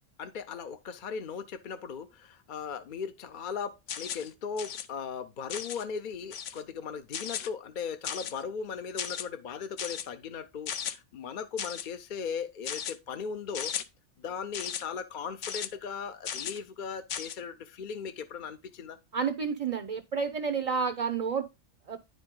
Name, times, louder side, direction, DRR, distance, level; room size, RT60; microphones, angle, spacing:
voice 1, 0.2-13.7 14.2-19.0, left 6 dB, 55° left, 0.6 m, -38 dB
sound 1, 3.9-4.3 4.6-4.9 5.5-5.8 6.3-6.6 7.1-7.5 8.0-8.4 9.0-9.3 9.8-10.1 10.7-10.9 11.6-11.9 12.6-12.9 13.5-13.8 14.5-14.8 15.4-15.7 16.2-16.6 17.1-17.4, left 9 dB, 80° left, 1.0 m, -36 dB
voice 2, 19.1-21.5 21.9-22.0, right 6 dB, 45° right, 0.5 m, -30 dB
9.5 x 5.1 x 3.6 m
omnidirectional pair, 1.2 m